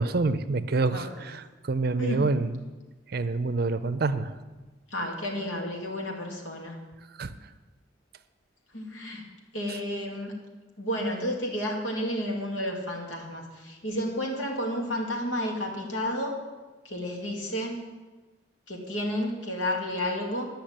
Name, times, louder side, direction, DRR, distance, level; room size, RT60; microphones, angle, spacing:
voice 1, 0.0-2.7 3.1-4.3 7.2-7.3 9.7-9.8, right 3 dB, 50° right, 12 dB, 0.5 m, -27 dB
voice 2, 4.9-6.8 8.7-9.2 9.5-10.3 10.8-16.3 16.8-17.8 18.7-20.5, equal, 80° left, 0 dB, 2.3 m, -31 dB
10.5 x 5.8 x 8.7 m, 1.2 s
head